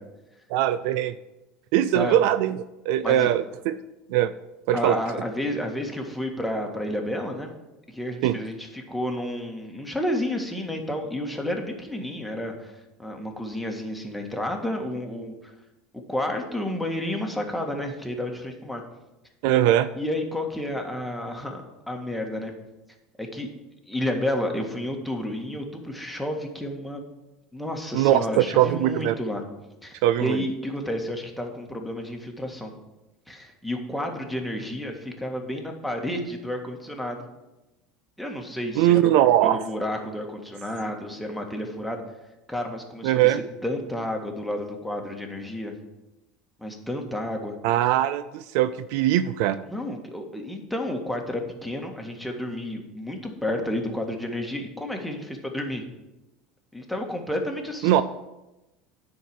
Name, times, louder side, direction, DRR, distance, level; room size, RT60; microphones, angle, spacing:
voice 1, 0.5-1.1 1.7-3.8 4.1-4.3 4.7-5.0 8.2-8.4 19.4-19.9 27.9-29.1 30.0-30.4 38.8-39.6 43.0-43.4 47.6-49.6 57.8-58.0, right 12 dB, 65° right, 14 dB, 0.3 m, -21 dB
voice 2, 3.0-3.3 4.7-7.5 7.9-15.5 15.9-18.8 19.9-22.5 23.2-23.5 23.9-27.0 27.5-29.4 29.8-32.7 33.3-37.2 38.2-39.1 39.4-42.0 42.5-43.4 43.6-45.7 46.6-47.6 49.6-55.8 56.7-58.0, left 1 dB, ahead, 1 dB, 1.8 m, -31 dB
10.0 x 4.8 x 7.0 m, 0.99 s
hypercardioid pair, 75°, 0 cm